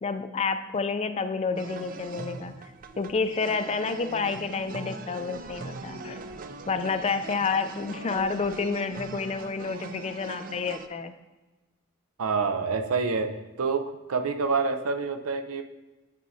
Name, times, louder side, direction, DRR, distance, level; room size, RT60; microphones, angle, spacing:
voice 1, 0.0-2.5 3.0-6.2 6.7-11.1, left 4 dB, 30° left, 10 dB, 0.4 m, -29 dB
sound 1, 1.6-10.9, right 3 dB, 40° right, 0.4 m, -40 dB
voice 2, 12.2-13.3 13.6-13.8 14.1-15.6, right 4 dB, 85° right, 7 dB, 0.6 m, -27 dB
9.0 x 6.1 x 2.7 m, 1.2 s
head